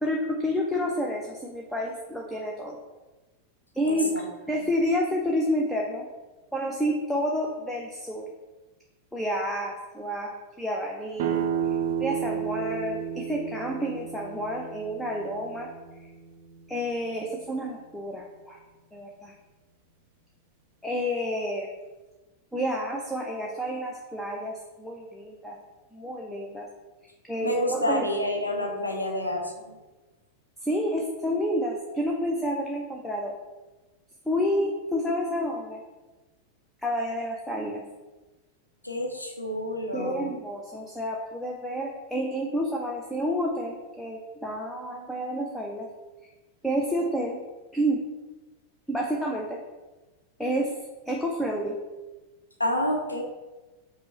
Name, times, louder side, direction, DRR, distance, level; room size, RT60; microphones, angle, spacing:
voice 1, 0.0-2.8 3.7-4.1 4.5-6.1 6.5-8.3 9.1-11.5 12.0-15.7 16.7-18.6 18.9-19.3 20.8-21.7 22.5-25.6 25.9-26.7 27.3-28.0 30.6-33.3 34.3-35.8 36.8-37.8 39.9-45.9 46.6-47.4 47.7-48.0 48.9-49.6 50.4-50.7 51.1-51.7, equal, 5° left, -2 dB, 0.5 m, -29 dB
voice 2, 3.8-4.2 27.4-29.7 38.8-40.3 52.6-53.2, left 1 dB, 85° left, 2 dB, 0.6 m, -28 dB
sound 1, 11.2-16.8, right 8 dB, 55° right, 0.6 m, -32 dB
5.1 x 2.1 x 4.3 m, 1.2 s
figure-of-eight pair, 90°, 0 cm